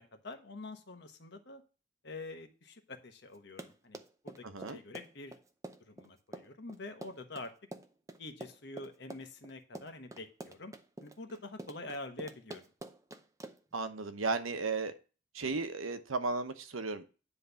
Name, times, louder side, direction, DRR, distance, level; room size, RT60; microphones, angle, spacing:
voice 1, 0.0-1.6 2.0-5.4 5.8-7.5 8.2-10.7 11.0-12.6, left 2 dB, 55° left, 6 dB, 1.2 m, -46 dB
Run, 3.3-13.8, right 1 dB, 15° right, 0.5 m, -47 dB
voice 2, 4.4-4.8 13.7-14.9 15.3-17.0, right 3 dB, 90° right, 9 dB, 1.0 m, -35 dB
10.0 x 3.4 x 6.9 m, 0.34 s
head